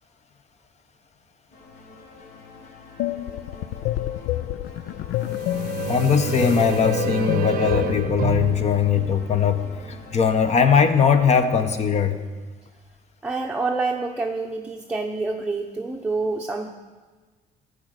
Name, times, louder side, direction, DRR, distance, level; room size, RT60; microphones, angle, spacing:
sound 1, 1.5-10.9, left 3 dB, 65° left, 1.6 m, -46 dB
sound 2, 3.0-8.1, left 13 dB, 85° left, 0.4 m, -28 dB
sound 3, 5.1-9.9, right 9 dB, 60° right, 0.7 m, -30 dB
voice 1, 5.9-12.2, left 6 dB, 40° left, 9 dB, 1.0 m, -20 dB
voice 2, 13.2-16.7, right 3 dB, 5° right, 1 dB, 0.8 m, -27 dB
13.0 x 5.1 x 8.2 m, 1.4 s
cardioid pair, 110°, 17 cm